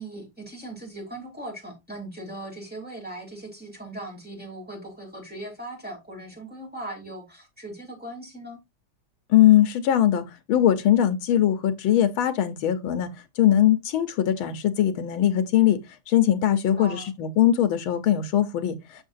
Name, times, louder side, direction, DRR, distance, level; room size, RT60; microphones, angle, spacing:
voice 1, 0.0-8.6 16.7-17.1, right 1 dB, 5° right, 2.7 m, -39 dB
voice 2, 9.3-10.2 10.5-13.1 13.4-15.8 16.1-18.8, left 11 dB, 75° left, 1.8 m, -21 dB
7.2 x 6.5 x 2.6 m
omnidirectional pair, 2.3 m